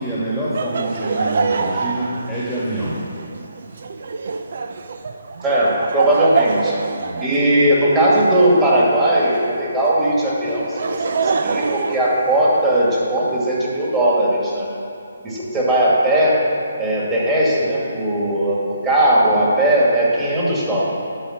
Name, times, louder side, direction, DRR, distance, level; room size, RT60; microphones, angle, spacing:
voice 1, 0.0-3.0 7.0-7.2, right 1 dB, ahead, -10 dB, 1.7 m, -26 dB
Laughter, 0.5-9.6 10.5-12.8, right 4 dB, 60° right, 0.6 m, -26 dB
voice 2, 5.4-6.8 7.2-14.7 15.2-16.3 16.8-18.6 18.8-20.9, right 1 dB, 15° right, -6 dB, 2.4 m, -18 dB
10.5 x 6.8 x 6.0 m, 2.6 s
hypercardioid pair, 155°, 0 cm